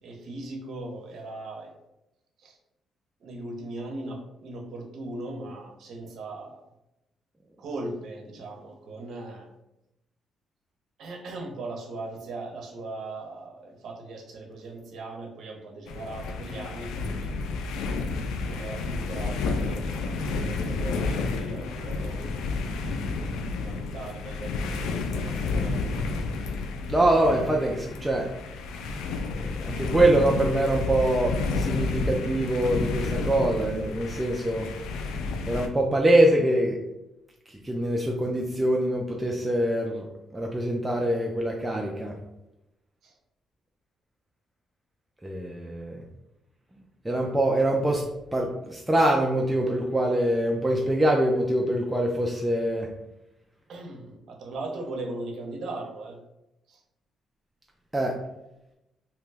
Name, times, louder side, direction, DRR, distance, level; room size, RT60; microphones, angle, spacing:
voice 1, 0.0-1.7 2.4-2.6 3.2-6.6 7.6-9.5 11.0-17.3 18.4-22.2 23.4-25.8 43.0-43.2 53.7-56.2 56.7-56.8, right 2 dB, 70° right, 1 dB, 0.7 m, -39 dB
sound 1, 15.9-35.7, left 3 dB, 90° left, 0.3 m, -30 dB
voice 2, 26.9-28.3 29.3-34.7 35.5-36.8 37.5-40.1 40.3-42.2 45.2-46.0 47.0-52.9 57.9-58.2, right 1 dB, 10° right, 0 dB, 0.4 m, -24 dB
2.9 x 2.2 x 3.3 m, 0.90 s
cardioid pair, 90°, 0 cm